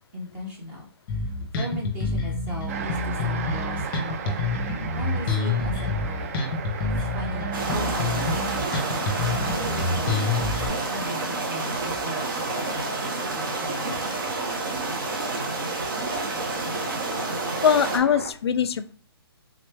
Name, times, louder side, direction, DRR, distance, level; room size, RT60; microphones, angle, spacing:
voice 1, 0.1-0.9 1.2-4.4 4.9-6.3 7.0-10.3 10.7-14.0, left 1 dB, 15° right, -2 dB, 1.1 m, -37 dB
Bass guitar, 1.1-10.7, left 3 dB, 25° left, 1.0 m, -27 dB
sound 1, 2.7-18.3, right 7 dB, 35° right, 0.4 m, -37 dB
sound 2, 7.5-18.0, right 2 dB, 55° right, 1.1 m, -29 dB
voice 2, 17.6-18.9, left 7 dB, 80° left, 14 dB, 0.4 m, -22 dB
3.7 x 3.1 x 3.3 m, 0.41 s
hypercardioid pair, 155°, 13 cm